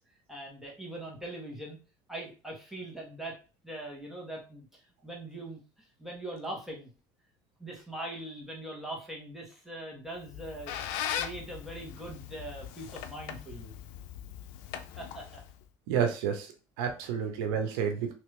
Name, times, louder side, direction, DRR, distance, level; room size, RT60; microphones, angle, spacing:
voice 1, 0.3-1.8 2.1-3.4 3.6-4.7 5.0-5.6 6.0-6.9 7.6-10.8 11.1-13.7 15.0-15.4, right 1 dB, 5° right, -2 dB, 1.6 m, -41 dB
Squeak, 10.2-15.6, left 10 dB, 80° left, 0.5 m, -39 dB
voice 2, 15.9-16.5 16.8-18.1, right 7 dB, 85° right, 5 dB, 0.8 m, -30 dB
3.3 x 2.9 x 3.3 m, 0.34 s
supercardioid pair, 105°, 11 cm